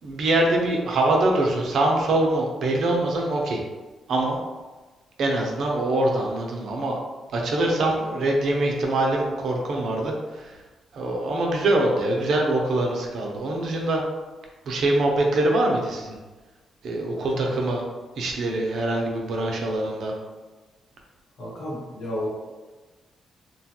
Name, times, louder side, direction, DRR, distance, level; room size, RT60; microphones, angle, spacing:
voice 1, 0.0-3.6 4.1-4.4 5.2-7.0 7.3-10.6 10.9-14.0 14.7-16.2 16.8-17.8 18.2-20.2, right 2 dB, 70° right, 0 dB, 0.6 m, -24 dB
voice 2, 17.2-17.6 21.4-22.3, left 1 dB, 75° left, -6 dB, 1.2 m, -32 dB
2.9 x 2.3 x 2.8 m, 1.2 s
cardioid pair, 95°, 0 cm